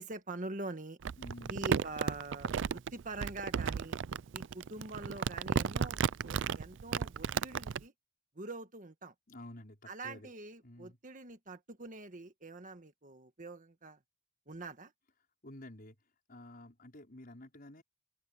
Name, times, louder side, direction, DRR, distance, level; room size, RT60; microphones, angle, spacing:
voice 1, 0.0-1.0 1.5-3.9 4.3-7.9 8.3-9.1 9.9-14.0 14.5-14.9, right 2 dB, 40° right, 1.6 m, -44 dB
Crumpling crinkling, 1.0-7.8, right 6 dB, 65° right, 0.4 m, -34 dB
voice 2, 1.2-1.6 9.3-10.3 10.6-11.0 15.4-16.0 16.3-17.8, left 1 dB, 45° left, 5.3 m, -50 dB
open air
head